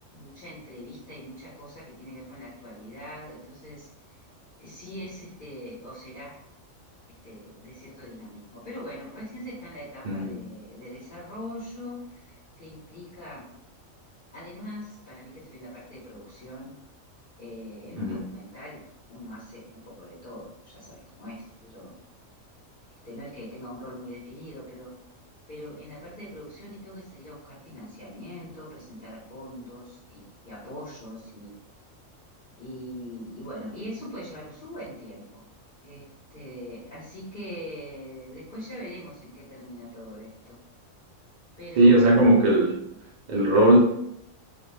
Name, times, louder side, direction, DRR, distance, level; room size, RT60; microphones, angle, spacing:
voice 1, 0.1-3.9 4.6-6.3 7.2-13.5 14.3-16.7 17.4-18.8 19.1-22.0 23.0-24.9 25.5-31.5 32.6-35.4 35.8-40.6 41.6-42.2, equal, 45° left, -10 dB, 0.9 m, -42 dB
voice 2, 10.0-10.4 18.0-18.2 41.8-42.8 43.3-43.8, right 1 dB, 70° right, -3 dB, 0.4 m, -18 dB
2.5 x 2.1 x 3.0 m, 0.74 s
omnidirectional pair, 1.4 m